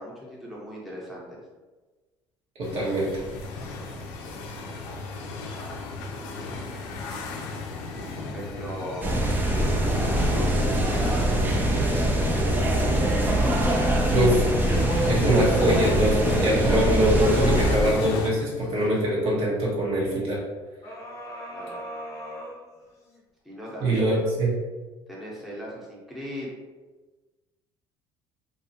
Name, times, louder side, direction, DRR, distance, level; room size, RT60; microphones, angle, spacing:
voice 1, 0.0-1.4 8.2-9.2 10.1-13.3 21.5-21.8 23.4-24.2 25.1-26.5, equal, ahead, -6 dB, 0.9 m, -38 dB
sound 1, 2.6-18.3, left 3 dB, 85° left, 0.5 m, -34 dB
voice 2, 2.6-3.2 14.1-14.5 15.1-20.4 23.8-24.5, right 1 dB, 65° right, -5 dB, 1.1 m, -23 dB
sound 2, 9.0-17.8, right 1 dB, 20° right, 0.5 m, -23 dB
sound 3, 11.8-14.9 15.4-19.1 20.8-23.2 23.7-23.8, left 1 dB, 30° left, 0.7 m, -43 dB
2.6 x 2.3 x 2.8 m, 1.2 s
supercardioid pair, 95°, 10 cm